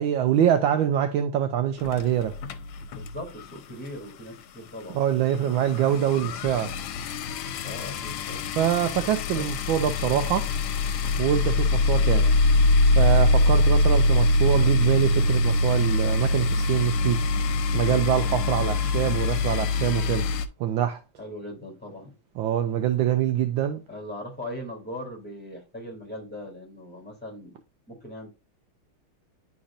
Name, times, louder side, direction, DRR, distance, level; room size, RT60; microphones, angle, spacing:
voice 1, 0.0-2.3 4.9-6.8 8.6-10.5 11.2-12.3 12.9-17.2 17.7-20.3 20.6-21.0 22.4-23.8, right 10 dB, 75° right, 1.3 m, -24 dB
sound 1, 1.8-3.6 3.9-4.1 4.4-4.5 4.7-20.5, left 2 dB, 85° left, 1.5 m, -24 dB
voice 2, 2.9-5.0 7.6-8.5 9.3-9.5 12.0-12.4 21.2-22.1 23.9-27.6 27.9-28.3, left 1 dB, 5° left, 2.7 m, -39 dB
10.0 x 4.1 x 2.5 m
omnidirectional pair, 2.4 m